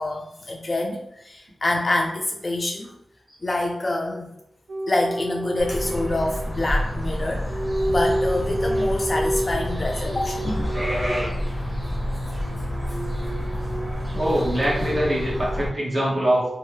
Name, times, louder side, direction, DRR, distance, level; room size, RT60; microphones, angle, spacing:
voice 1, 0.0-2.9 3.4-4.3 4.9-10.8 11.2-11.4 12.9-13.0, left 2 dB, 40° left, 0 dB, 0.4 m, -26 dB
sound 1, 4.7-6.7 7.5-15.7, right 1 dB, 80° right, 0.3 m, -30 dB
sound 2, 5.6-15.7, equal, 10° right, 1.0 m, -28 dB
voice 2, 14.1-16.4, right 1 dB, 40° right, -7 dB, 0.9 m, -23 dB
2.8 x 2.1 x 3.1 m, 0.81 s
cardioid pair, 55°, 0 cm